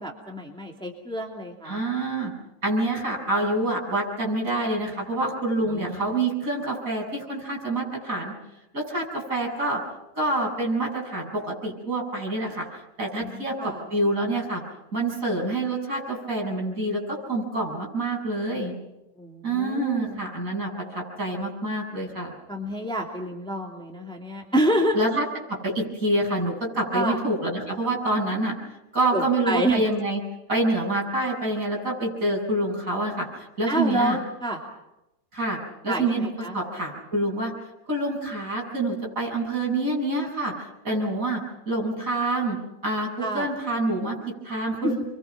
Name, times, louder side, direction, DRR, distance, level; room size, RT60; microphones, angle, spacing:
voice 1, 0.0-1.8 5.6-6.1 13.2-13.8 19.2-20.2 22.5-25.0 26.9-27.2 29.1-29.8 33.7-34.6 35.9-36.6 43.2-43.5 44.8-44.9, right 1 dB, ahead, 0 dB, 2.6 m, -28 dB
voice 2, 1.6-2.3 2.6-8.3 8.7-9.8 10.1-12.6 13.0-14.6 14.9-18.7 19.4-22.3 24.9-28.5 28.9-30.2 30.5-34.2 35.3-35.6 35.8-37.5 37.9-42.6 42.8-45.0, right 2 dB, 45° right, -1 dB, 8.3 m, -27 dB
30.0 x 24.0 x 6.0 m, 0.91 s
omnidirectional pair, 2.0 m